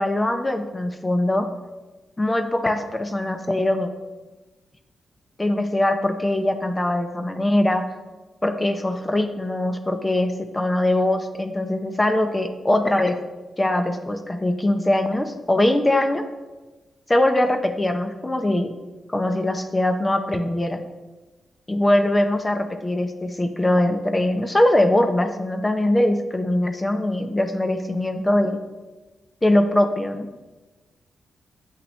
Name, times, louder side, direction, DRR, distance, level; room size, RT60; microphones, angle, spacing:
voice 1, 0.0-1.5 2.2-3.9 5.4-7.8 8.4-13.2 13.6-16.2 17.1-18.7 19.1-20.8 21.7-28.6 29.4-30.3, left 1 dB, 20° left, 7 dB, 0.6 m, -22 dB
8.4 x 5.7 x 3.2 m, 1.2 s
cardioid pair, 75°, 0 cm